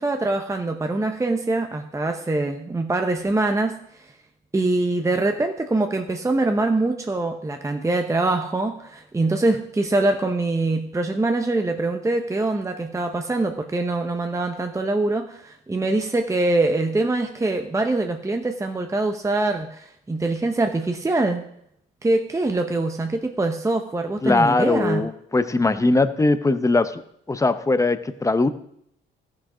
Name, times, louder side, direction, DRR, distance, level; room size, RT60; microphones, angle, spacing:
voice 1, 0.0-3.8 4.5-21.4 22.0-25.0, right 2 dB, 15° right, 5 dB, 0.8 m, -23 dB
voice 2, 24.2-27.0 27.3-28.5, left 2 dB, 15° left, 11 dB, 0.8 m, -20 dB
14.0 x 6.4 x 5.0 m, 0.72 s
cardioid pair, 90°, 20 cm